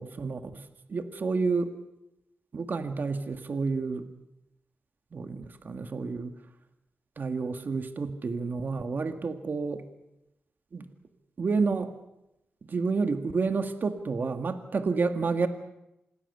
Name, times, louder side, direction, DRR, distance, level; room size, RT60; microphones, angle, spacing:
voice 1, 0.0-1.7 2.5-4.1 5.1-6.3 7.2-9.8 10.7-10.9 11.4-11.9 12.7-15.5, right 4 dB, 50° right, 8 dB, 1.7 m, -30 dB
26.5 x 20.5 x 6.8 m, 0.88 s
wide cardioid pair, 120°, 4 cm